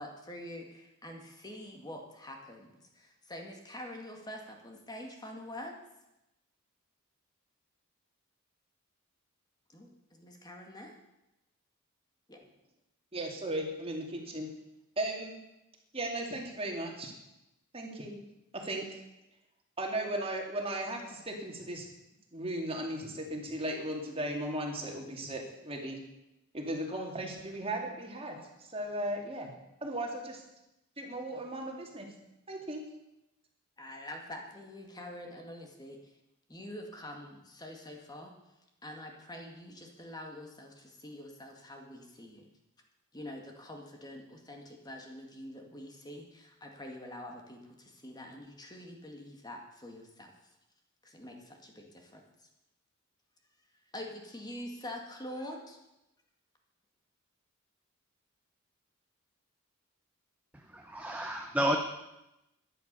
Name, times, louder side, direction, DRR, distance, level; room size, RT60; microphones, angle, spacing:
voice 1, 0.0-5.8 9.7-10.9 12.3-12.4 33.8-36.0 36.5-38.3 38.8-42.5 43.1-50.3 51.0-52.2 53.9-55.8, left 1 dB, 20° left, 2 dB, 2.0 m, -45 dB
voice 2, 13.1-14.5 15.0-15.4 15.9-17.1 17.7-18.2 18.5-19.0 19.8-21.9 22.3-26.0 26.5-29.5 29.8-30.4 31.0-32.1 32.5-32.8, right 1 dB, 25° right, 2 dB, 2.4 m, -36 dB
voice 3, 60.5-61.8, equal, 5° right, 2 dB, 0.9 m, -31 dB
13.0 x 10.5 x 6.8 m, 0.92 s
head